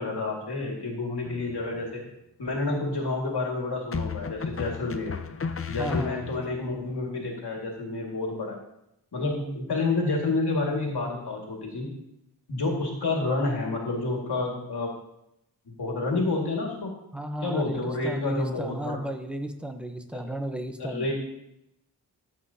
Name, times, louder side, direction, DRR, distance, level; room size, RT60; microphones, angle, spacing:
voice 1, 0.0-2.0 2.4-5.2 5.7-8.6 9.1-11.9 12.5-15.0 15.7-16.9 17.4-19.0 20.1-20.2 20.8-21.1, left 3 dB, 65° left, -1 dB, 2.0 m, -29 dB
sound 1, 1.2-1.8 3.9-6.6, left 5 dB, 35° left, 0.5 m, -34 dB
voice 2, 5.7-6.2 9.2-9.6 17.1-21.1, right 1 dB, 5° right, 6 dB, 0.8 m, -34 dB
13.5 x 7.9 x 2.8 m, 0.81 s
wide cardioid pair, 120°, 43 cm